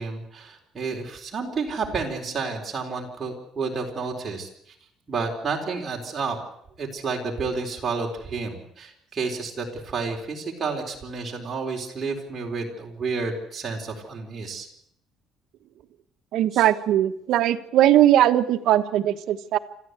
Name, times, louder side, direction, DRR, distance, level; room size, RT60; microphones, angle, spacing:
voice 1, 0.0-4.5 5.1-6.4 6.8-14.7 16.5-16.6, right 4 dB, 20° right, -1 dB, 4.2 m, -30 dB
voice 2, 16.3-19.6, right 12 dB, 60° right, 7 dB, 1.3 m, -19 dB
26.0 x 14.5 x 8.2 m, 0.72 s
cardioid pair, 175°, 0 cm